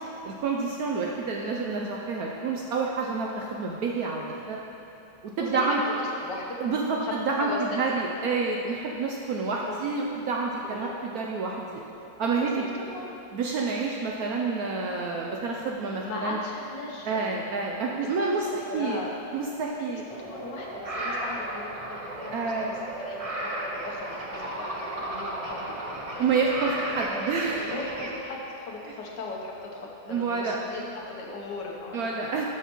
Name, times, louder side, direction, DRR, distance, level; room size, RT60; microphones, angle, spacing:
voice 1, 0.2-4.6 5.4-5.8 6.6-11.8 12.2-12.7 13.3-16.4 17.0-19.0 19.3-20.0 22.3-22.7 26.2-27.7 28.8-28.9 30.1-30.6 31.9-32.5, right 4 dB, 70° right, -1 dB, 0.9 m, -28 dB
voice 2, 5.4-5.9 6.2-6.6 7.0-7.9 8.2-8.4 9.7-9.8 10.8-11.0 12.5-13.1 16.0-17.5 18.2-19.1 19.8-20.0 20.3-26.2 27.6-32.1, left 3 dB, 70° left, -1 dB, 1.6 m, -38 dB
sound 1, 20.1-28.1, right 1 dB, 55° right, 0.4 m, -34 dB
12.0 x 6.5 x 3.0 m, 3.0 s
omnidirectional pair, 2.0 m